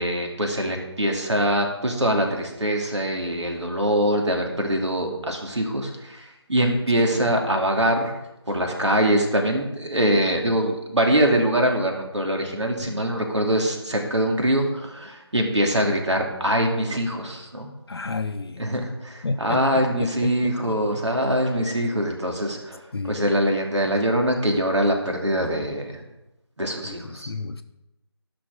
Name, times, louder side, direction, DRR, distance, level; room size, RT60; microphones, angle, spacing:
voice 1, 0.0-8.1 8.5-17.7 18.6-22.8 23.1-26.0 26.6-27.3, right 1 dB, 85° right, 2 dB, 2.6 m, -23 dB
voice 2, 17.9-18.7 19.2-21.0 22.9-23.2 26.8-27.6, left 3 dB, 60° left, 6 dB, 0.7 m, -32 dB
13.5 x 6.0 x 5.2 m, 0.94 s
figure-of-eight pair, 165°, 14 cm